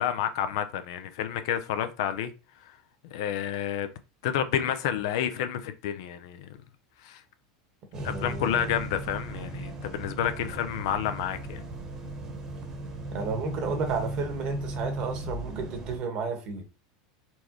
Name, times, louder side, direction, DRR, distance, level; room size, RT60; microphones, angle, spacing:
voice 1, 0.0-2.3 3.1-3.9 4.2-6.5 7.0-7.2 8.0-11.6, left 10 dB, 70° left, 0.7 m, -30 dB
sound 1, 7.9-16.0, right 1 dB, 25° right, 1.2 m, -37 dB
voice 2, 7.9-8.8 13.1-16.6, right 4 dB, 40° right, 1.4 m, -32 dB
4.3 x 3.4 x 3.0 m
supercardioid pair, 145°, 3 cm